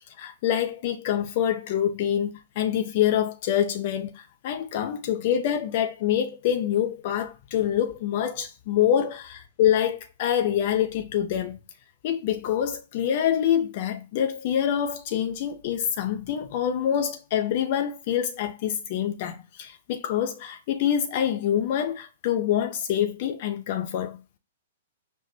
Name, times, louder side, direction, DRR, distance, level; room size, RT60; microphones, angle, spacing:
voice 1, 0.2-11.6 12.0-24.4, left 10 dB, 45° left, 0.3 m, -26 dB
5.3 x 2.1 x 3.1 m
figure-of-eight pair, 110°, 0 cm